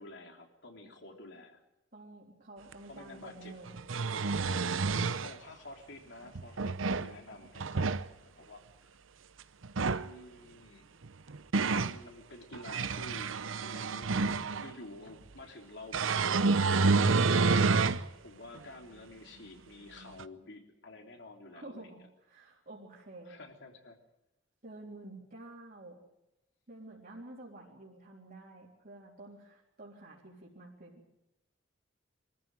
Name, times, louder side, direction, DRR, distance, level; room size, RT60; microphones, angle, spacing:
voice 1, 0.0-1.6 2.9-3.5 5.1-8.9 9.9-10.9 11.7-13.3 13.6-14.1 14.6-17.8 18.2-22.1 23.2-24.0, left 2 dB, 65° left, 3 dB, 3.3 m, -50 dB
voice 2, 1.9-4.0 21.5-22.0 22.3-23.4 24.6-26.0 26.7-31.0, right 2 dB, 50° right, -4 dB, 3.7 m, -50 dB
sound 1, 2.7-2.8 3.7-5.3 6.3-7.1 7.5-8.0 9.6-10.1 11.0-12.0 12.5-14.7 15.9-18.0 18.6-18.7 20.2-20.3, right 4 dB, 85° right, 0.8 m, -28 dB
24.0 x 14.0 x 9.1 m, 0.90 s
head